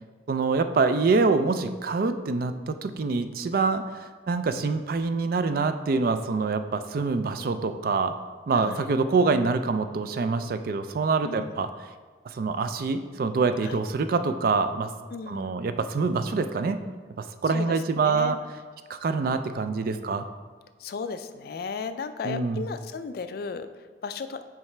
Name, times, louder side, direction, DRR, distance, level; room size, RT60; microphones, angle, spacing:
voice 1, 0.3-8.1 8.5-11.7 12.3-14.9 15.3-16.8 17.4-18.4 18.9-20.3 22.2-22.7, right 4 dB, 55° right, 9 dB, 0.4 m, -25 dB
voice 2, 8.5-8.9 11.2-11.6 13.6-13.8 15.1-15.5 17.5-18.4 20.8-24.4, left 5 dB, 60° left, 10 dB, 0.3 m, -35 dB
7.1 x 4.7 x 3.3 m, 1.4 s
head